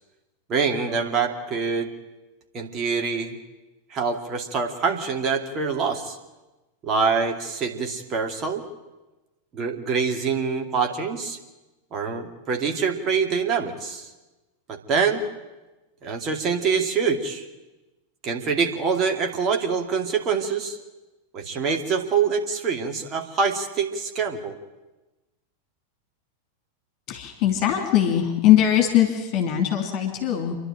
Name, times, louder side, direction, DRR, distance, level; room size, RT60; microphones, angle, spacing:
voice 1, 0.5-1.9 2.5-3.4 3.9-6.2 6.8-8.6 9.5-11.4 11.9-14.1 14.7-15.2 16.0-17.5 18.2-20.8 21.3-24.6, right 5 dB, 30° right, 3 dB, 2.5 m, -25 dB
voice 2, 27.1-30.6, left 11 dB, 40° left, 4 dB, 3.1 m, -21 dB
27.5 x 11.5 x 9.1 m, 1.1 s
figure-of-eight pair, 90°, 0 cm